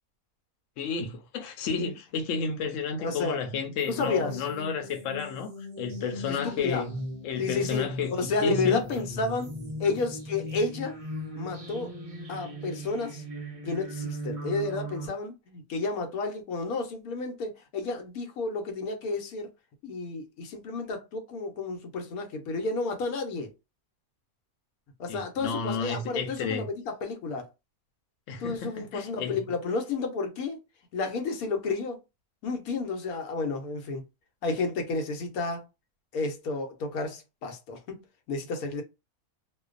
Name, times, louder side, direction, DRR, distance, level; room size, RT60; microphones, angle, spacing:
voice 1, 0.8-5.5 5.8-7.0 7.2-8.1 8.4-8.9 25.1-26.7 28.3-29.4, left 5 dB, 70° left, 0.9 m, -31 dB
voice 2, 3.0-3.4 3.9-4.4 6.3-6.8 7.4-9.5 9.8-10.9 11.3-11.9 12.3-13.2 13.6-19.5 19.8-23.5 25.0-27.5 28.4-30.6 30.9-32.0 32.4-34.0 34.4-35.7 36.1-38.0 38.3-38.8, left 3 dB, 90° left, 1.1 m, -31 dB
sound 1, 3.8-15.1, equal, 55° right, 0.3 m, -38 dB
2.5 x 2.2 x 2.4 m
omnidirectional pair, 1.5 m